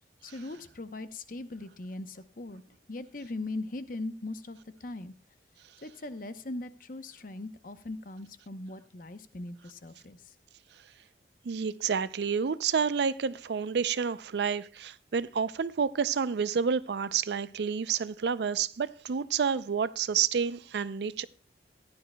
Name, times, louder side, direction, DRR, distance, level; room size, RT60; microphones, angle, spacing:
voice 1, 0.2-2.6 2.9-5.1 5.8-10.2, left 2 dB, 50° left, 0.8 m, -40 dB
voice 2, 11.5-21.2, right 6 dB, 65° right, 0.4 m, -29 dB
15.5 x 11.5 x 2.2 m
head